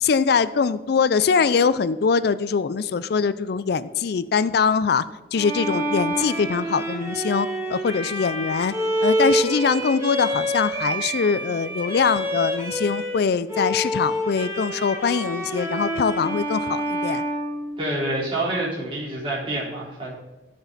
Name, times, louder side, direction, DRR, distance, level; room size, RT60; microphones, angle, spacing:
voice 1, 0.0-5.0 5.3-8.7 9.0-17.2, left 5 dB, 65° left, 15 dB, 0.4 m, -22 dB
Bowed string instrument, 5.3-13.2 13.5-18.3, right 1 dB, 15° right, 3.4 m, -27 dB
voice 2, 17.8-20.1, right 1 dB, 30° right, -7 dB, 4.0 m, -27 dB
16.0 x 6.6 x 4.0 m, 1.1 s
head